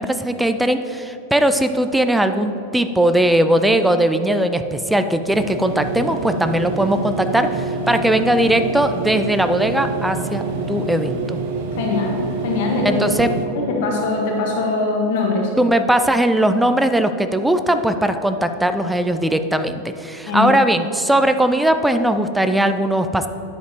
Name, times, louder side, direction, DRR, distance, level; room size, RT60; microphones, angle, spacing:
voice 1, 0.0-11.4 12.8-13.3 15.6-23.3, right 1 dB, 5° right, 8 dB, 0.4 m, -19 dB
sound 1, 5.3-13.4, right 3 dB, 50° right, 0.7 m, -26 dB
voice 2, 11.7-13.0 13.5-15.5 20.3-20.5, left 3 dB, 50° left, 0 dB, 1.5 m, -22 dB
9.8 x 8.1 x 3.0 m, 3.0 s
figure-of-eight pair, 90°, 0 cm